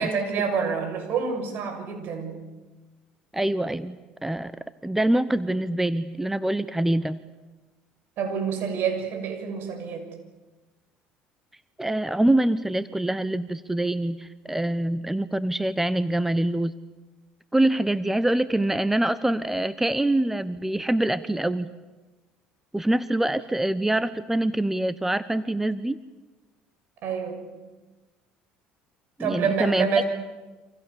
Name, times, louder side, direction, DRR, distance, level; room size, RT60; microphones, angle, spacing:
voice 1, 0.0-2.4 8.2-10.1 27.0-27.6 29.2-30.0, right 6 dB, 60° right, 6 dB, 7.0 m, -27 dB
voice 2, 3.3-4.0 4.2-4.5 4.8-7.2 11.8-16.7 17.5-21.7 22.7-26.0 29.2-29.9, right 1 dB, 10° right, 14 dB, 1.0 m, -25 dB
28.5 x 27.0 x 7.1 m, 1.2 s
supercardioid pair, 75°, 4 cm